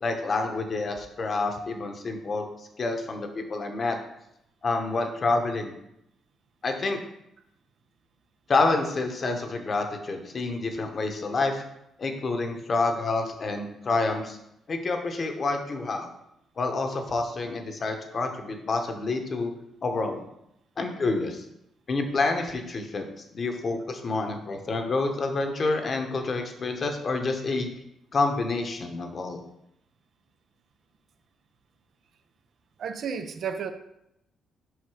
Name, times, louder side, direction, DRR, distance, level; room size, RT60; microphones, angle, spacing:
voice 1, 0.0-2.5 2.8-4.0 4.6-5.7 6.6-7.0 8.5-11.6 12.0-14.4 14.7-16.1 16.6-19.5 19.8-20.2 20.8-21.4 21.9-27.7 28.1-29.4, left 3 dB, 40° left, 5 dB, 1.0 m, -28 dB
voice 2, 32.8-33.7, right 6 dB, 60° right, 8 dB, 0.6 m, -32 dB
5.2 x 4.8 x 4.8 m, 0.81 s
cardioid pair, 90°, 0 cm